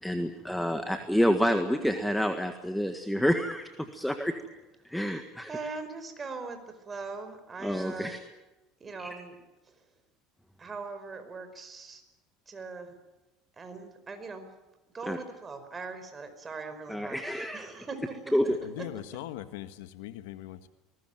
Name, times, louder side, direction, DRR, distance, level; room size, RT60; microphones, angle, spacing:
voice 1, 0.0-4.3 4.8-5.5 7.6-8.2 9.0-9.1 15.1-15.2 16.9-17.7 18.3-18.4, equal, ahead, 1.7 m, -28 dB
voice 2, 5.5-8.2 8.8-9.4 10.6-12.0 12.5-13.0 13.6-14.5 14.9-18.3 18.8-18.9, right 4 dB, 25° right, 4.9 m, -40 dB
voice 3, 18.6-20.7, left 13 dB, 90° left, 1.5 m, -40 dB
22.5 x 20.0 x 9.2 m
supercardioid pair, 115°, 0 cm